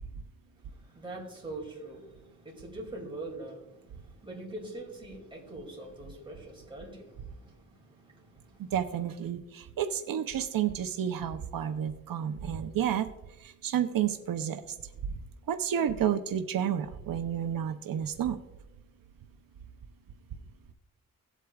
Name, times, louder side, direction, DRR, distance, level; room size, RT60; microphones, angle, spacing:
voice 1, 0.6-8.7, right 2 dB, 15° right, 2.4 m, -44 dB
voice 2, 8.7-13.1 13.4-14.6 15.5-18.4, right 9 dB, 85° right, 0.6 m, -30 dB
17.5 x 8.2 x 2.3 m
wide cardioid pair, 175°, 33 cm